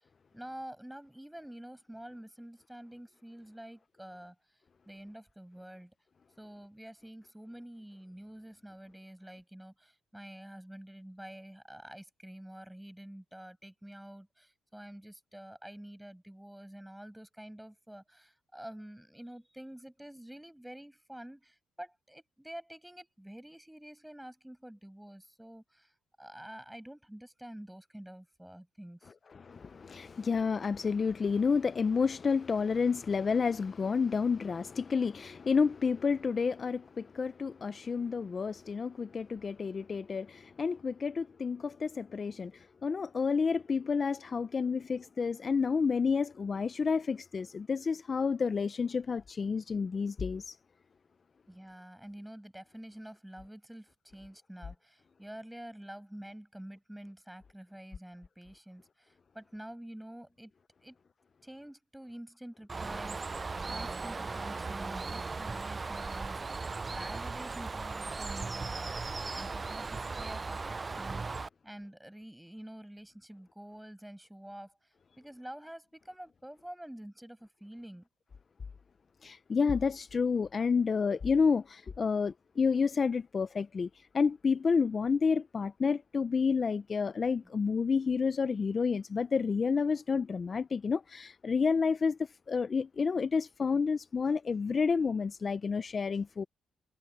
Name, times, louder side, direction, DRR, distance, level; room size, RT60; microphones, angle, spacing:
voice 1, 0.3-4.4 4.9-5.9 6.4-25.9 26.2-29.1 51.5-60.5 60.8-60.9 61.4-78.1, right 1 dB, 5° right, 6.4 m, -48 dB
voice 2, 29.3-50.6 79.2-96.4, left 5 dB, 40° left, 0.5 m, -30 dB
Bird, 62.7-71.5, right 4 dB, 30° right, 0.4 m, -37 dB
cardioid pair, 90°, 0 cm